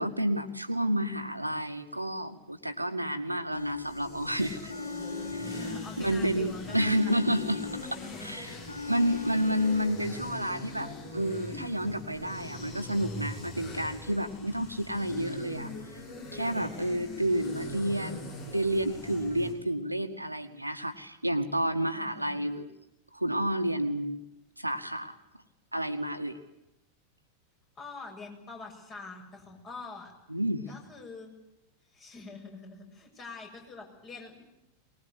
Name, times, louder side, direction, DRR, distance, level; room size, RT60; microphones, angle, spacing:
voice 1, 0.0-4.7 5.3-5.6 6.0-8.5 8.9-15.7 16.3-22.7 23.1-24.2 24.6-25.2 25.7-26.4 30.3-30.7, equal, 85° right, 8 dB, 2.0 m, -30 dB
sound 1, 3.5-4.3 4.7-6.3 6.7-8.3 8.7-10.1, left 4 dB, 85° left, 0.9 m, -39 dB
sound 2, 3.6-19.5, left 2 dB, 45° left, 8.0 m, -42 dB
voice 2, 5.3-8.4 16.6-17.3 21.9-22.4 27.8-30.1 30.7-31.3 31.9-34.4, left 3 dB, 30° left, 1 dB, 7.5 m, -46 dB
23.5 x 20.5 x 9.7 m, 0.91 s
figure-of-eight pair, 90°, 0 cm